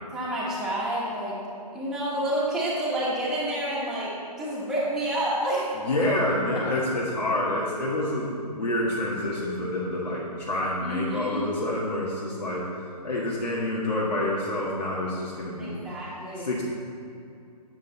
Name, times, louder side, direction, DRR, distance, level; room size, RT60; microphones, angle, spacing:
voice 1, 0.1-1.4 1.7-4.1 4.4-5.7 10.8-11.4 15.6-16.5, right 1 dB, 5° right, -8 dB, 1.3 m, -29 dB
voice 2, 5.7-12.6 13.0-15.8 16.3-16.6, left 1 dB, 90° left, -6 dB, 1.8 m, -28 dB
9.0 x 6.7 x 4.1 m, 2.5 s
hypercardioid pair, 155°, 21 cm